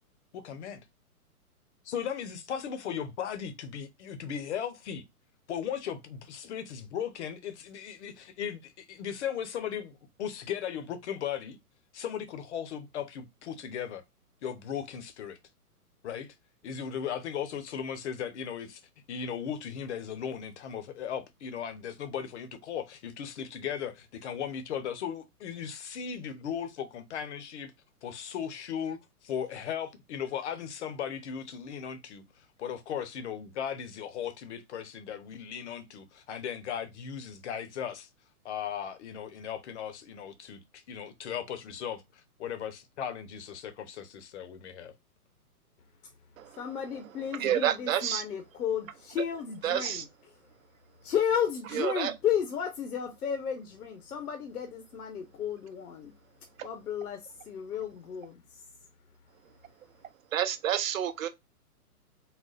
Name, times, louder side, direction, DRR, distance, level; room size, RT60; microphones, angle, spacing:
voice 1, 0.3-0.8 1.8-5.0 5.5-11.6 11.9-14.0 14.4-15.4 16.0-16.3 16.6-18.8 19.1-27.7 28.0-38.1 38.4-42.0 42.4-44.9, left 8 dB, 50° left, 0.8 m, -37 dB
voice 2, 46.5-50.0 51.0-56.1 56.6-58.6, left 8 dB, 75° left, 1.0 m, -33 dB
voice 3, 47.3-48.2 49.6-50.0 51.7-52.1 56.6-56.7 60.3-61.3, right 10 dB, 60° right, 0.7 m, -29 dB
4.1 x 2.1 x 3.9 m
hypercardioid pair, 140°, 46 cm